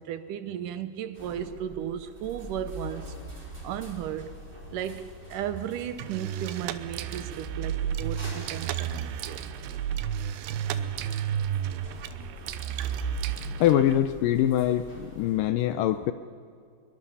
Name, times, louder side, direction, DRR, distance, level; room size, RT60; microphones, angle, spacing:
voice 1, 0.0-3.1 3.6-4.3 4.7-9.4, right 10 dB, 75° right, 12 dB, 2.0 m, -35 dB
sound 1, 1.1-15.4, left 1 dB, 15° right, 4.0 m, -45 dB
sound 2, 6.0-14.0, right 9 dB, 90° right, 3.0 m, -32 dB
voice 2, 13.4-16.1, left 11 dB, 85° left, 11 dB, 1.9 m, -24 dB
24.5 x 23.0 x 7.0 m, 2.2 s
omnidirectional pair, 4.7 m